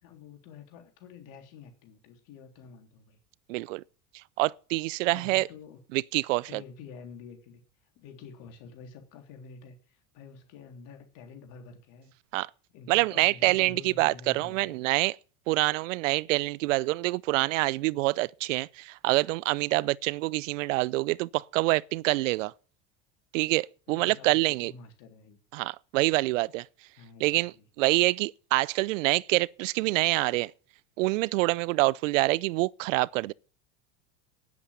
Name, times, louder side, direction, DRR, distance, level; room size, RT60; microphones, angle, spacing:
voice 1, 0.0-3.2 5.1-5.8 6.5-12.1 12.7-14.8 23.9-25.4 27.0-27.7, left 5 dB, 60° left, 3.7 m, -48 dB
voice 2, 3.5-3.8 4.4-5.5 5.9-6.6 12.3-12.5 12.9-15.2 15.5-22.5 23.3-24.7 25.5-26.7 27.2-27.5 27.8-30.5 31.0-33.3, right 21 dB, 85° right, 0.6 m, -26 dB
9.9 x 8.4 x 8.8 m
supercardioid pair, 120°, 37 cm